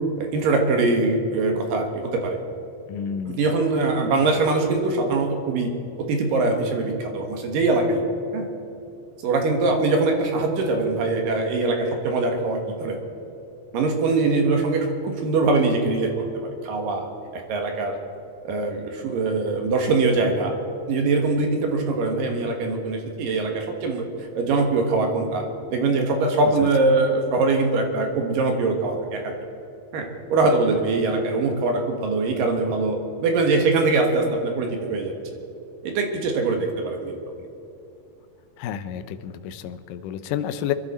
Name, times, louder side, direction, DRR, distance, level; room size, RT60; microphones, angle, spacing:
voice 1, 0.2-2.4 3.3-5.7 6.0-8.0 8.3-8.5 9.2-13.0 13.7-16.1 16.6-17.1 17.3-18.0 18.4-20.5 20.9-25.5 25.7-29.3 29.9-35.1 35.8-37.2, right 3 dB, 65° right, 3 dB, 2.9 m, -22 dB
voice 2, 2.9-3.4 38.6-40.7, left 9 dB, 80° left, 10 dB, 2.0 m, -30 dB
23.5 x 12.0 x 4.2 m, 2.8 s
omnidirectional pair, 4.5 m